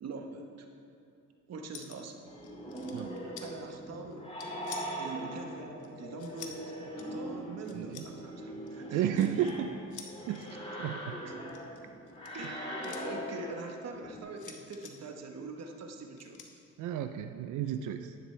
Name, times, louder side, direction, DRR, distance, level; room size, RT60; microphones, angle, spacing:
voice 1, 0.0-0.7 1.5-2.3 3.2-4.3 5.0-6.7 7.1-9.5 10.3-10.5 11.2-11.3 12.3-16.4, right 3 dB, 60° right, 4 dB, 1.2 m, -44 dB
sound 1, 1.7-2.1 2.4-3.5 4.1-5.1 5.8-6.6 7.0-7.1 7.6-8.1 8.7-9.5 9.9-10.5 11.4-13.0 14.4-14.9 16.2-16.5, left 7 dB, 85° left, 1.1 m, -48 dB
sound 2, 2.2-14.2, equal, 20° left, 2.3 m, -41 dB
voice 2, 8.9-9.7 10.3-10.4 10.8-11.2 16.8-18.1, right 10 dB, 80° right, 8 dB, 0.5 m, -32 dB
11.0 x 10.0 x 3.3 m, 2.6 s
cardioid pair, 90°, 30 cm